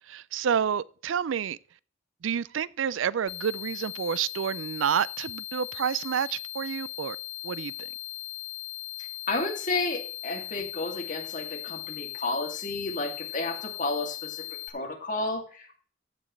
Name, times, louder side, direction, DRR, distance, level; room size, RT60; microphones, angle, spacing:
voice 1, 0.1-1.6 2.2-7.2 7.4-7.9, right 7 dB, 80° right, 0.4 m, -29 dB
sound 1, 3.3-14.7, left 17 dB, 85° left, 1.8 m, -38 dB
voice 2, 9.0-14.4 14.7-15.7, left 2 dB, 40° left, 2.5 m, -32 dB
14.0 x 9.0 x 3.2 m
head